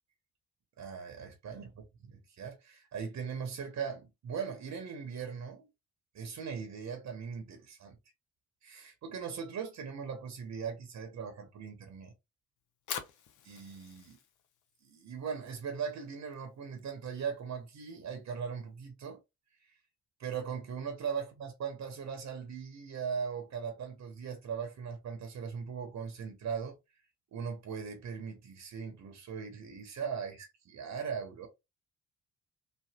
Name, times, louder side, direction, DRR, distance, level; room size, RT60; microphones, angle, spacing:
voice 1, 0.8-1.7 2.4-5.7 6.1-8.0 8.6-12.1 13.4-14.2 14.8-19.2 20.2-26.8 27.3-31.5, right 6 dB, 45° right, 1.0 m, -39 dB
Fire, 12.6-18.8, left 8 dB, 50° left, 0.7 m, -48 dB
3.4 x 2.1 x 2.3 m
hypercardioid pair, 45°, 38 cm